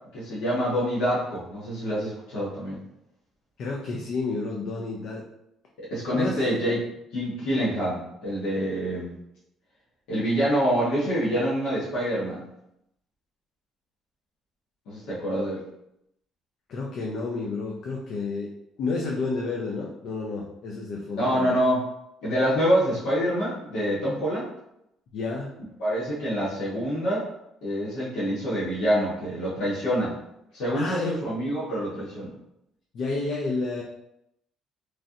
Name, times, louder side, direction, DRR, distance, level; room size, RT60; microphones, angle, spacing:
voice 1, 0.1-2.8 5.8-6.9 7.1-9.1 10.1-12.4 14.9-15.6 21.2-21.8 22.2-24.5 25.8-27.3 27.6-30.1 30.5-32.3, equal, 85° left, -9 dB, 1.1 m, -26 dB
voice 2, 3.6-5.3 6.1-6.4 16.7-18.5 18.8-21.6 25.1-25.5 30.7-31.1 32.9-33.8, left 3 dB, 60° left, -1 dB, 0.4 m, -30 dB
3.1 x 2.7 x 2.4 m, 0.81 s
cardioid pair, 135°, 0 cm